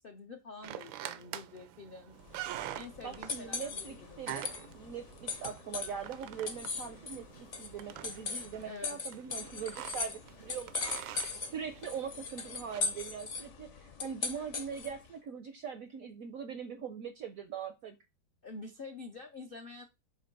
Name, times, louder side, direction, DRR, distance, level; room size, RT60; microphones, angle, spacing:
voice 1, 0.0-2.2 2.7-4.5 8.6-9.0 18.4-19.8, left 3 dB, 75° left, 0.5 m, -47 dB
sound 1, 0.6-12.8, right 12 dB, 90° right, 1.4 m, -46 dB
sound 2, 2.2-15.1, left 4 dB, 50° left, 0.9 m, -40 dB
voice 2, 3.0-10.7 11.3-18.0, right 7 dB, 70° right, 0.8 m, -42 dB
7.8 x 2.7 x 5.2 m
omnidirectional pair, 2.1 m